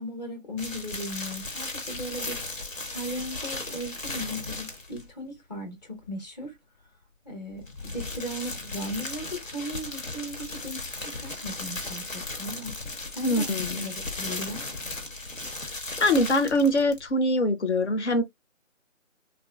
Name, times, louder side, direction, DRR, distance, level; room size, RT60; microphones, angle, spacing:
voice 1, 0.0-2.4 2.9-6.6 7.2-12.8 13.1-13.5 13.8-14.7, equal, 35° left, 1.3 m, -37 dB
sound 1, 0.6-5.1 7.5-17.1, left 2 dB, 80° left, 1.5 m, -36 dB
voice 2, 13.2-13.8 16.0-18.2, left 1 dB, 60° left, 0.8 m, -23 dB
3.7 x 2.3 x 2.3 m
figure-of-eight pair, 165°, 39 cm